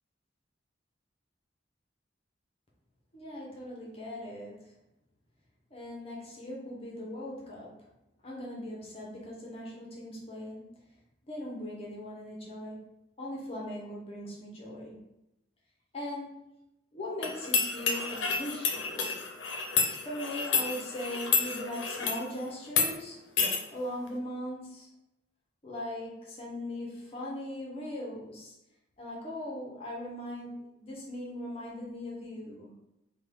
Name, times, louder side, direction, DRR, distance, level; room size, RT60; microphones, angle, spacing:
voice 1, 3.1-4.7 5.7-7.9 8.2-10.6 11.3-12.8 13.2-15.0 15.9-16.6 16.9-19.1 20.0-23.2 23.7-24.9 25.6-28.5 29.0-32.7, left 1 dB, 30° left, -4 dB, 0.7 m, -39 dB
sound 1, 17.2-22.2 22.7-22.9 23.4-23.6, left 5 dB, 80° left, 0.5 m, -30 dB
3.4 x 2.2 x 3.4 m, 0.89 s
head